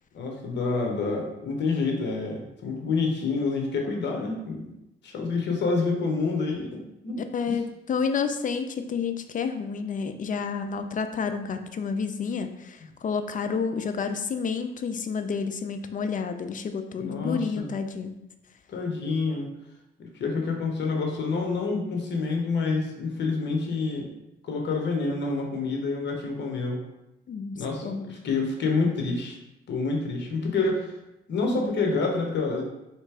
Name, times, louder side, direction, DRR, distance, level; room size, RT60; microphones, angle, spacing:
voice 1, 0.1-4.7 5.0-7.5 17.0-17.7 18.7-19.5 20.0-24.1 24.4-26.8 27.5-29.4 29.7-30.9 31.3-32.6, left 4 dB, 65° left, 1 dB, 1.1 m, -28 dB
voice 2, 7.3-18.1 27.3-28.1, left 5 dB, 40° left, 8 dB, 0.5 m, -30 dB
3.3 x 3.1 x 4.7 m, 0.91 s
cardioid pair, 90°, 20 cm